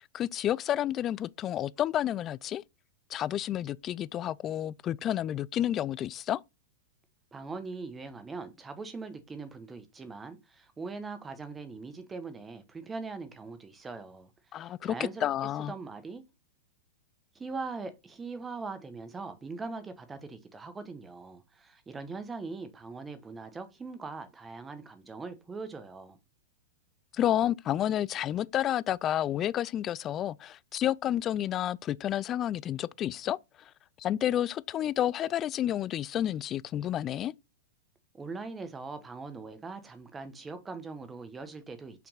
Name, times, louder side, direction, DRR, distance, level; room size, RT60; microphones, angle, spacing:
voice 1, 0.1-2.6 3.1-6.4 14.5-15.0 15.2-15.7 27.1-33.4 34.0-37.3, left 11 dB, 25° left, 0.3 m, -30 dB
voice 2, 7.3-15.3 15.7-16.2 17.3-26.2 38.1-42.1, right 4 dB, 10° right, 1.0 m, -41 dB
5.9 x 3.4 x 5.6 m
hypercardioid pair, 145°, 0 cm